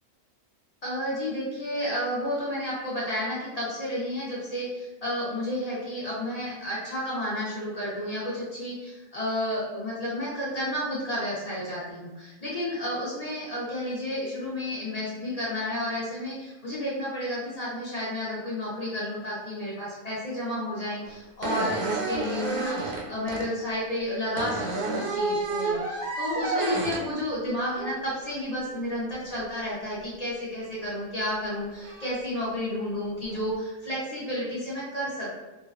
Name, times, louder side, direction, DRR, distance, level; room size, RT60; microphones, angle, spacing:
voice 1, 0.8-35.3, left 1 dB, 55° left, -7 dB, 0.4 m, -31 dB
door open closing squeaking knocking different types, 21.1-21.2 21.4-23.5 24.4-27.1 27.7-28.0 30.8-30.9 31.8-32.1 33.1-33.4, right 3 dB, 85° right, 1.0 m, -30 dB
2.3 x 2.2 x 2.4 m, 1.1 s
omnidirectional pair, 1.4 m